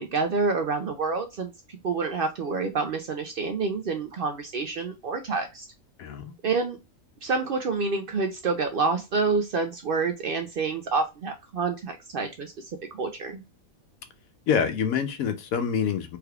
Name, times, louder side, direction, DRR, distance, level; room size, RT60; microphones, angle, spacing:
voice 1, 0.0-1.5 1.8-5.7 6.4-6.8 7.2-13.4, right 4 dB, 65° right, 0.5 m, -28 dB
voice 2, 6.0-6.3 14.5-16.2, left 7 dB, 80° left, 1.1 m, -26 dB
3.4 x 3.3 x 2.3 m
omnidirectional pair, 1.5 m